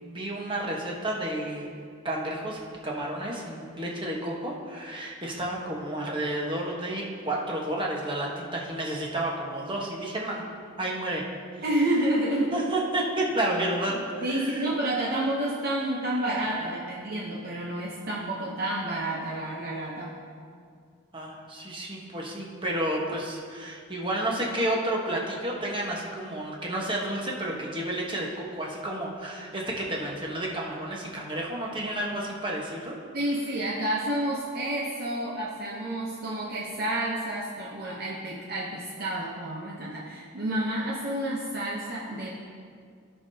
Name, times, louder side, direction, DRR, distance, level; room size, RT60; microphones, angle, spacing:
voice 1, 0.0-1.7 2.0-10.5 10.8-11.2 11.6-11.7 12.5-14.7 21.1-33.0, right 1 dB, 25° right, -2 dB, 1.3 m, -31 dB
voice 2, 11.6-12.6 13.9-20.2 33.1-42.3, right 1 dB, 50° right, -4 dB, 0.9 m, -30 dB
16.5 x 5.6 x 2.8 m, 2.2 s
head